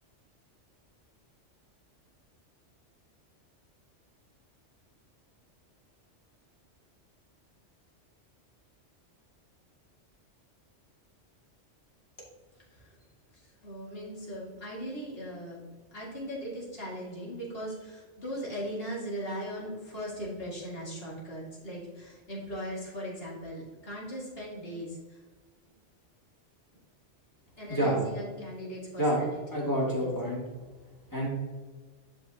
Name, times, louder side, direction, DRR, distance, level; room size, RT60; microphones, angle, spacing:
voice 1, 12.6-12.9 13.3-15.6 15.9-25.2 27.6-29.7 30.0-30.1, equal, 55° left, -4 dB, 2.7 m, -39 dB
voice 2, 29.5-30.4 31.1-31.3, equal, 15° left, -5 dB, 2.6 m, -27 dB
10.5 x 5.6 x 3.0 m, 1.3 s
omnidirectional pair, 1.2 m